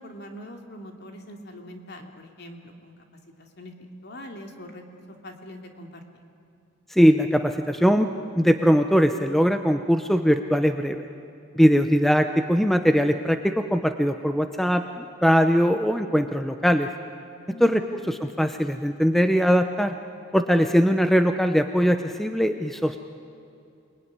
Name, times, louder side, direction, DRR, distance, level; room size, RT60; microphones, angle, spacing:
voice 1, 0.0-3.1 3.4-6.0 17.5-18.1, equal, 50° left, 3 dB, 2.8 m, -43 dB
voice 2, 6.9-8.1 8.4-11.1 11.6-16.9 17.6-19.9 20.3-23.1, equal, ahead, 7 dB, 0.7 m, -21 dB
28.5 x 21.0 x 9.8 m, 2.6 s
head